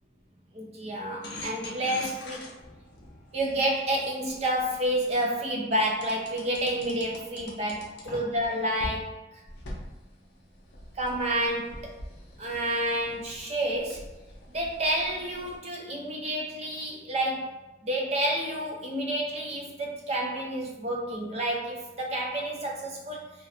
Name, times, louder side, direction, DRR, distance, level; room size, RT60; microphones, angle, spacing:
voice 1, 0.5-2.5 3.3-9.2 11.0-12.0 12.4-14.1 14.5-17.5 17.8-23.3, right 1 dB, 35° right, -1 dB, 0.5 m, -29 dB
sound 1, 1.2-5.1 6.0-8.5 8.8-9.0 9.5-15.6, left 1 dB, 60° left, 0.5 m, -44 dB
2.4 x 2.1 x 2.7 m, 1.0 s
head